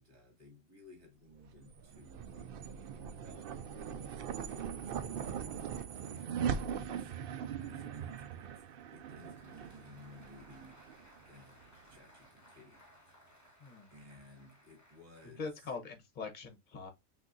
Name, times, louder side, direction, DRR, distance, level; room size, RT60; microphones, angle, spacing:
voice 1, 0.0-10.8 11.2-12.8 13.9-15.7, left 2 dB, 30° right, 1.8 m, -58 dB
sound 1, 1.4-12.0, right 7 dB, 65° right, 0.6 m, -41 dB
Applause, 8.8-16.0, left 1 dB, 15° left, 1.2 m, -63 dB
voice 2, 15.4-16.9, left 4 dB, 40° left, 1.1 m, -42 dB
6.0 x 2.7 x 2.6 m
omnidirectional pair, 1.4 m